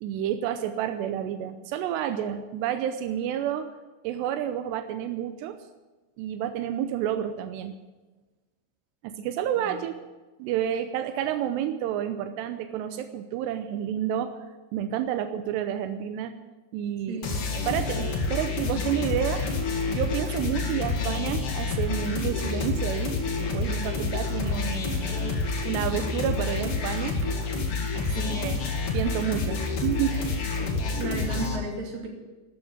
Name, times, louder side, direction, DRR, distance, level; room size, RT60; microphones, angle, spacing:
voice 1, 0.0-3.7 4.0-5.6 6.2-7.8 9.0-10.0 10.4-14.3 14.7-16.3 16.7-17.2 17.7-23.1 23.5-25.2 25.7-27.2 27.9-28.6 28.9-30.3, right 10 dB, 85° right, 8 dB, 2.5 m, -30 dB
voice 2, 17.1-17.4 28.2-28.4 31.0-32.1, right 3 dB, 50° right, 0 dB, 4.0 m, -33 dB
sound 1, 17.2-31.6, left 4 dB, 60° left, 1.5 m, -28 dB
13.0 x 10.5 x 8.6 m, 1.2 s
omnidirectional pair, 5.7 m